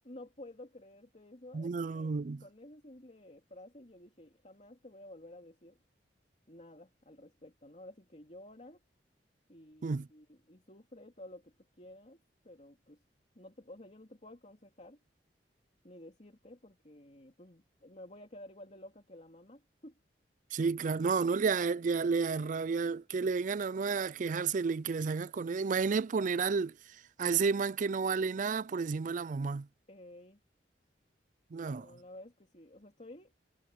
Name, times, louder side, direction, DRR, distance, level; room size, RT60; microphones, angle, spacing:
voice 1, 0.1-5.8 6.5-8.8 9.5-13.0 13.3-15.0 15.8-19.9 29.9-30.4 31.6-33.3, left 1 dB, 40° left, 2.7 m, -52 dB
voice 2, 1.5-2.4 9.8-10.1 20.5-26.7 27.2-29.7 31.5-31.9, right 5 dB, 45° right, 0.4 m, -31 dB
head